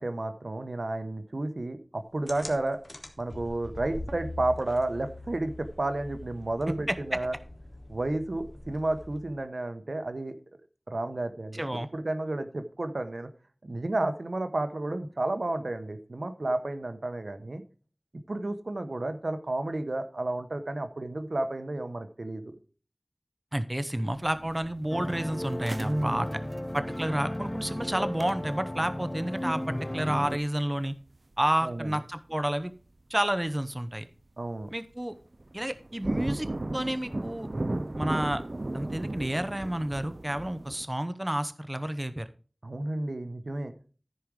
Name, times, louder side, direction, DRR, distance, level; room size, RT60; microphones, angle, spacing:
voice 1, 0.0-2.8 3.2-7.4 7.9-10.4 10.9-13.3 13.6-17.6 18.3-22.6 25.8-26.4 31.6-31.9 34.4-34.7 42.6-43.7, right 2 dB, 90° right, 9 dB, 0.8 m, -32 dB
sound 1, 2.3-9.4, left 1 dB, 55° left, 1.7 m, -43 dB
voice 2, 6.9-7.2 11.6-11.9 23.5-26.3 26.7-30.9 31.4-32.7 33.1-34.1 34.7-35.2 35.5-36.5 36.7-37.5 38.0-38.4 38.7-42.3, right 1 dB, 25° right, 11 dB, 0.7 m, -30 dB
sound 2, 24.1-32.1 32.4-32.5 33.2-33.5 33.8-34.2 34.6-34.7 35.0-40.9, right 2 dB, 65° right, 0.4 m, -37 dB
sound 3, 24.9-30.4, left 1 dB, 25° left, 0.8 m, -35 dB
14.0 x 4.9 x 4.8 m, 0.38 s
wide cardioid pair, 40°, 0 cm